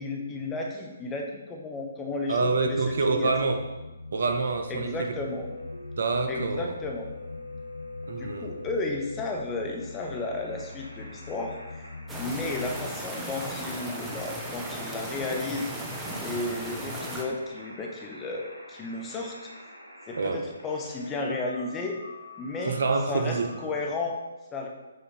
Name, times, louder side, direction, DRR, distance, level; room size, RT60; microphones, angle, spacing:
voice 1, 0.0-3.3 4.7-5.5 6.3-7.1 8.2-15.7 16.2-19.5 20.1-22.0 22.4-22.8 23.1-24.2 24.5-24.7, left 3 dB, 15° left, 1 dB, 0.9 m, -33 dB
voice 2, 2.3-3.6 4.1-5.1 6.0-6.7 8.1-8.5 20.2-20.5 22.6-23.5, right 4 dB, 60° right, 6 dB, 0.7 m, -26 dB
sound 1, 2.5-12.9, left 3 dB, 65° left, 0.7 m, -43 dB
sound 2, 4.8-24.0, left 1 dB, 85° right, 1.0 m, -45 dB
sound 3, 12.1-17.2, right 1 dB, 10° right, 0.8 m, -36 dB
7.8 x 2.8 x 5.2 m, 1.1 s
figure-of-eight pair, 130°, 0 cm